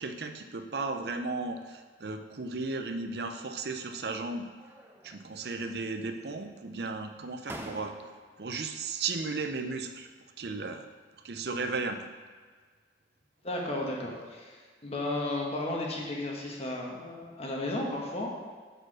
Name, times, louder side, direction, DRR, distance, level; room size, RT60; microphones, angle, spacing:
voice 1, 0.0-4.5 5.0-7.9 8.4-10.1 10.4-10.8 11.2-12.1, right 3 dB, 60° right, 7 dB, 0.6 m, -35 dB
sound 1, 3.6-4.2 4.6-5.3 5.6-6.4 7.0-7.1 7.5-8.4, right 1 dB, 15° right, 0.5 m, -47 dB
voice 2, 13.4-18.4, left 1 dB, 35° left, -2 dB, 1.2 m, -34 dB
6.6 x 4.6 x 6.1 m, 1.5 s
head